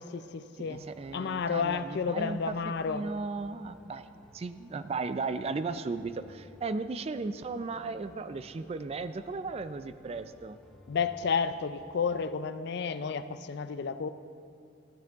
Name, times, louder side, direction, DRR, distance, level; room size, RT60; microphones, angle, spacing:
voice 1, 0.0-0.9 1.1-3.0 10.9-14.1, left 6 dB, 60° left, 12 dB, 0.4 m, -31 dB
sound 1, 0.6-12.3, equal, ahead, 0.6 m, -57 dB
voice 2, 0.6-2.5 2.9-4.1 4.3-10.6, right 4 dB, 35° right, 12 dB, 0.3 m, -36 dB
13.5 x 10.5 x 3.5 m, 2.6 s
head